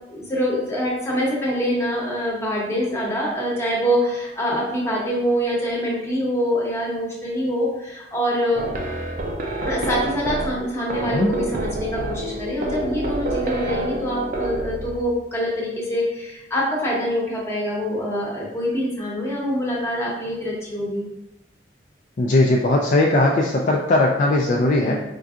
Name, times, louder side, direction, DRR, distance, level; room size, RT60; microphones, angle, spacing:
voice 1, 0.1-8.7 9.6-21.1 24.8-24.9, equal, 15° left, -4 dB, 0.9 m, -25 dB
sound 1, 8.5-15.1, right 2 dB, 50° right, 0.5 m, -28 dB
voice 2, 22.2-24.9, left 2 dB, 45° left, 0 dB, 0.3 m, -18 dB
4.5 x 2.6 x 2.4 m, 0.94 s
head